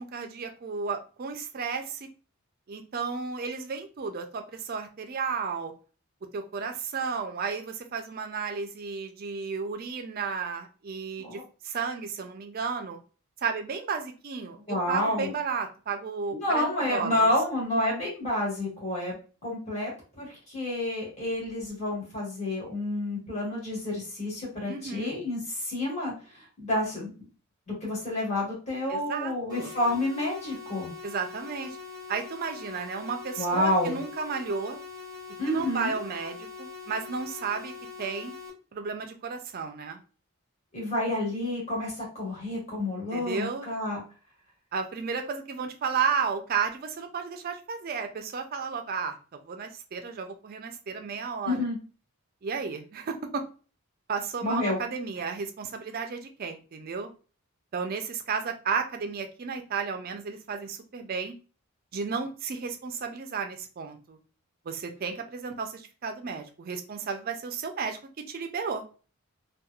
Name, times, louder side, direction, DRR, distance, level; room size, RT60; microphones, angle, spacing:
voice 1, 0.0-2.0 2.7-5.7 6.3-11.4 11.6-13.0 13.4-17.2 24.7-25.1 28.9-29.8 31.0-31.8 32.1-34.8 35.5-37.7 38.0-38.3 38.7-40.0 43.1-43.7 44.7-51.6 52.4-53.4 54.1-57.1 57.7-61.4 61.9-64.2 64.7-68.0 68.3-68.8, right 5 dB, 40° right, 5 dB, 0.4 m, -33 dB
voice 2, 14.7-15.3 16.3-19.9 20.2-27.1 27.7-30.9 33.4-34.0 35.4-35.9 40.7-44.0 51.4-51.8 54.4-54.8, left 1 dB, 30° left, -4 dB, 1.3 m, -29 dB
sound 1, 29.5-38.5, left 4 dB, 15° right, 0.8 m, -43 dB
2.9 x 2.3 x 2.3 m, 0.36 s
head